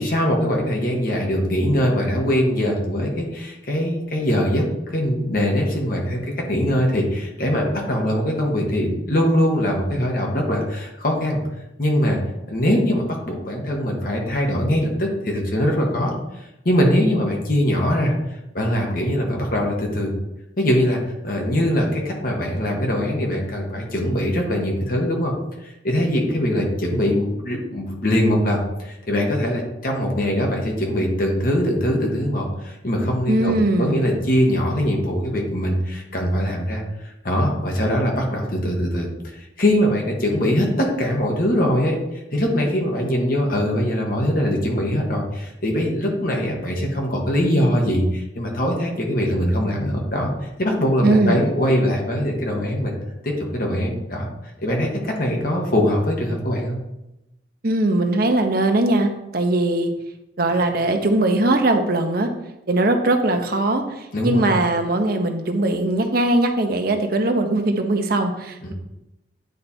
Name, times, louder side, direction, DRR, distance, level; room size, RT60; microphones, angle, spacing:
voice 1, 0.0-4.6 4.9-11.4 11.8-12.2 12.5-16.1 16.6-18.1 18.5-20.1 20.6-25.3 25.6-33.5 33.8-42.0 42.3-50.3 50.6-52.9 53.2-54.3 54.6-56.8 64.1-64.5 68.6-68.7, equal, 50° left, 0 dB, 1.4 m, -22 dB
voice 2, 33.3-34.1 51.0-51.5 57.6-59.9 60.4-62.3 62.7-68.7, right 2 dB, 55° right, 5 dB, 0.8 m, -20 dB
9.4 x 3.4 x 4.2 m, 0.92 s
head